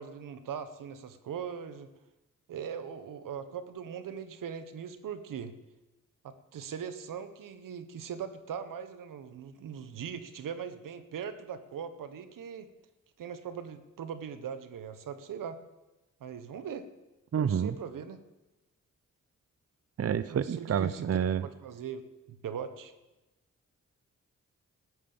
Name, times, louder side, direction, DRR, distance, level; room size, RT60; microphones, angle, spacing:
voice 1, 0.0-1.9 2.5-5.5 6.2-12.7 13.2-15.6 16.2-16.9 17.4-18.2 20.3-21.1 21.4-22.0 22.3-22.9, right 7 dB, 85° right, 11 dB, 1.1 m, -40 dB
voice 2, 17.3-17.7 20.0-21.4, right 8 dB, 50° right, 16 dB, 0.6 m, -28 dB
14.0 x 9.5 x 7.1 m, 1.0 s
cardioid pair, 50°, 32 cm